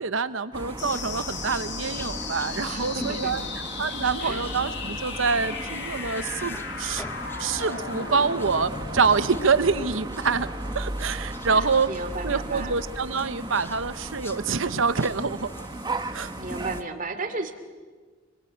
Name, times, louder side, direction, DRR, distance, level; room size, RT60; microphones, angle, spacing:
voice 1, 0.0-3.4 3.8-7.0 7.4-15.5 16.1-16.3, right 5 dB, 70° right, 12 dB, 0.9 m, -26 dB
sound 1, 0.5-16.8, left 1 dB, 10° left, 1.0 m, -42 dB
sound 2, 0.5-16.8, right 2 dB, 20° right, 1.1 m, -36 dB
sound 3, 0.8-11.8, left 6 dB, 55° left, 2.1 m, -37 dB
voice 2, 2.7-3.5 4.2-4.4 11.5-12.8 16.4-17.5, right 3 dB, 40° right, 7 dB, 2.7 m, -34 dB
29.0 x 23.0 x 8.7 m, 1.4 s
head